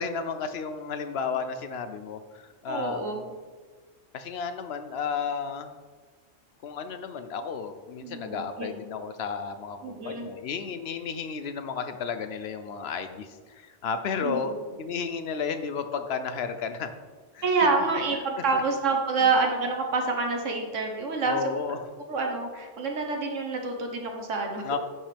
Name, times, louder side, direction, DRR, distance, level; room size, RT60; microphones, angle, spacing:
voice 1, 0.0-3.3 4.1-5.7 6.6-14.5 14.8-16.9 17.3-17.4 18.5-18.6 19.2-19.3 21.2-21.8 24.6-24.8, left 6 dB, 65° left, 9 dB, 0.8 m, -33 dB
voice 2, 2.7-3.3 8.0-8.7 9.8-10.3 14.2-14.7 17.4-21.6 22.1-24.8, right 4 dB, 85° right, 3 dB, 1.5 m, -27 dB
11.0 x 5.4 x 3.4 m, 1.4 s
omnidirectional pair, 1.2 m